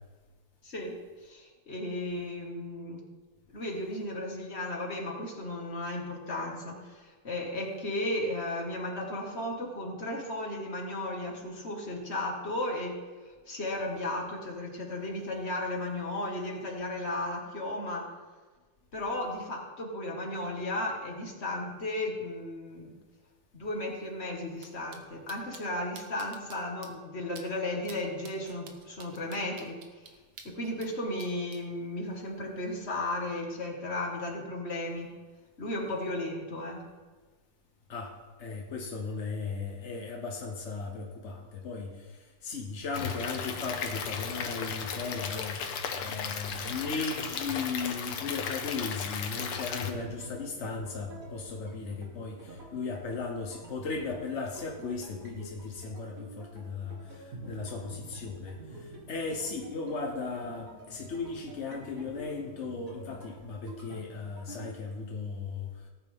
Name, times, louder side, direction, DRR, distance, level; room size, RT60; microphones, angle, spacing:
voice 1, 0.6-1.0 1.2-3.0 3.5-13.0 13.3-18.1 18.9-23.0 23.5-29.8 30.0-30.2 30.4-35.1 35.6-36.8, left 1 dB, 30° left, 0 dB, 1.9 m, -35 dB
sound 1, 24.6-24.7 24.9-25.0 25.3-25.6 26.0-26.6 26.8-26.9 27.4-27.5 27.8-28.0 28.2-30.9 31.2-31.6, right 6 dB, 65° right, 1.7 m, -48 dB
voice 2, 37.9-65.9, left 4 dB, 50° left, 1 dB, 0.8 m, -37 dB
Stream / Liquid, 42.9-49.9, left 6 dB, 80° left, 1.9 m, -35 dB
sound 2, 49.9-64.7, right 1 dB, 40° right, 1.8 m, -48 dB
18.0 x 9.0 x 3.6 m, 1.4 s
omnidirectional pair, 2.4 m